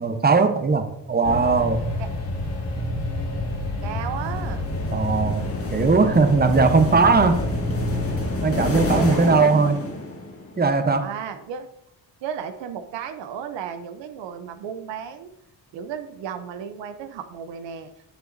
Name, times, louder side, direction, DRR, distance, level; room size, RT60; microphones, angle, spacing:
voice 1, 0.0-1.8 4.9-5.4 5.7-7.4 8.4-9.8 10.6-11.1, right 4 dB, 20° right, 8 dB, 0.9 m, -19 dB
sound 1, 1.2-9.1, left 1 dB, 80° left, 2.0 m, -28 dB
voice 2, 3.8-4.6 8.8-9.7 11.0-11.7 12.2-15.3 15.7-17.9, right 8 dB, 80° right, 9 dB, 0.7 m, -34 dB
sound 2, 4.1-10.6, left 2 dB, 30° left, 1.7 m, -31 dB
7.9 x 7.7 x 2.6 m, 0.79 s
supercardioid pair, 50°, 44 cm